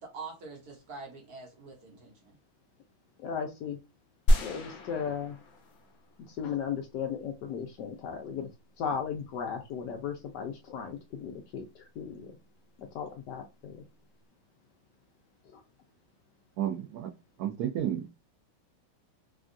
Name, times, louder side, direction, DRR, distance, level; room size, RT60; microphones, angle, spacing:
voice 1, 0.0-2.3, right 4 dB, 55° right, 1.2 m, -45 dB
voice 2, 3.2-3.8 4.4-5.4 6.3-8.5 8.8-12.3 12.8-13.8 15.5-15.6, left 7 dB, 75° left, 1.0 m, -36 dB
sound 1, 4.3-6.5, equal, 90° left, 0.6 m, -29 dB
voice 3, 16.6-17.1 17.4-18.1, right 10 dB, 85° right, 0.8 m, -31 dB
3.4 x 2.2 x 2.5 m
omnidirectional pair, 2.2 m